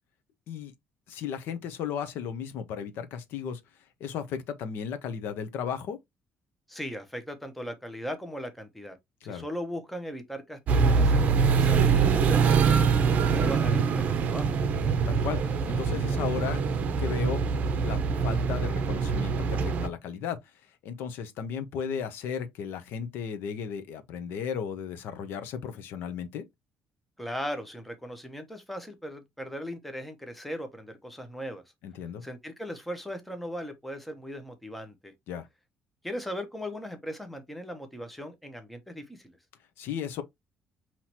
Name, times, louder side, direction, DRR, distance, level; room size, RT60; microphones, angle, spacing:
voice 1, 1.1-3.6 4.0-6.0 9.2-9.4 15.1-16.6 17.0-17.4 17.7-20.4 20.8-26.4 31.8-32.2 35.3-35.5 39.8-40.2, left 7 dB, 70° left, 0.8 m, -35 dB
voice 2, 6.7-9.0 9.2-14.5 27.2-31.6 32.2-35.1 36.0-39.3, equal, ahead, 0.7 m, -38 dB
sound 1, 10.7-19.9, right 5 dB, 40° right, 0.7 m, -24 dB
5.7 x 3.0 x 2.9 m
cardioid pair, 170°, 4 cm